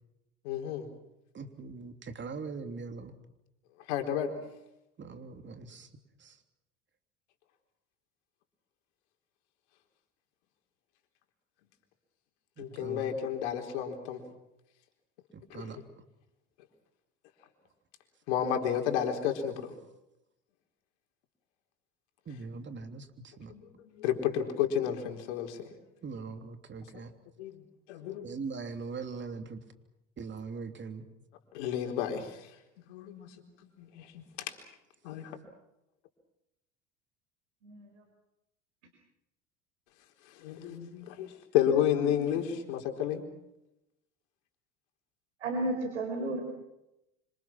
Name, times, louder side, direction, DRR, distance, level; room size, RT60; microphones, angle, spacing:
voice 1, 0.4-0.9 3.9-4.3 12.6-14.2 15.5-15.7 18.3-19.7 23.5-25.6 27.4-27.5 27.9-28.3 31.5-32.3 32.9-33.3 33.8-34.2 35.0-35.2 40.4-43.2, left 9 dB, 75° left, 4 dB, 4.3 m, -31 dB
voice 2, 1.3-3.2 5.0-5.9 6.2-6.4 12.6-13.2 15.3-15.8 22.2-23.5 26.0-27.1 28.2-29.6 30.2-31.0, right 4 dB, 30° right, 7 dB, 3.2 m, -41 dB
voice 3, 42.0-42.4 45.4-46.4, right 2 dB, 90° right, 4 dB, 4.6 m, -33 dB
26.5 x 26.0 x 6.1 m, 0.88 s
hypercardioid pair, 85°, 35 cm